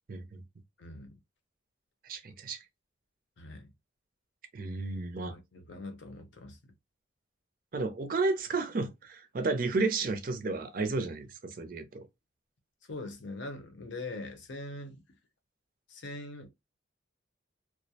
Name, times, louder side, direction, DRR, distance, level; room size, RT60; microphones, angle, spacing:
voice 1, 0.1-0.4 2.0-2.6 4.5-5.3 7.7-12.1, right 3 dB, 45° right, 0.4 m, -32 dB
voice 2, 0.8-1.2 3.4-3.7 5.3-6.7 12.8-15.0 15.9-16.5, left 2 dB, 70° left, 0.6 m, -42 dB
2.3 x 2.0 x 2.7 m
head